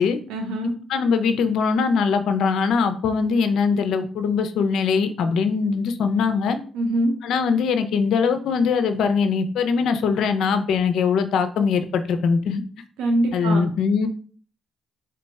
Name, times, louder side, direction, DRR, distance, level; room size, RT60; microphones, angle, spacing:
voice 1, 0.3-0.7 6.7-7.1 13.0-13.6, right 1 dB, 90° right, 2 dB, 0.5 m, -23 dB
voice 2, 0.9-6.6 7.2-12.6 13.3-14.1, left 5 dB, 75° left, 9 dB, 0.4 m, -21 dB
3.8 x 2.2 x 4.0 m, 0.42 s
cardioid pair, 90°, 0 cm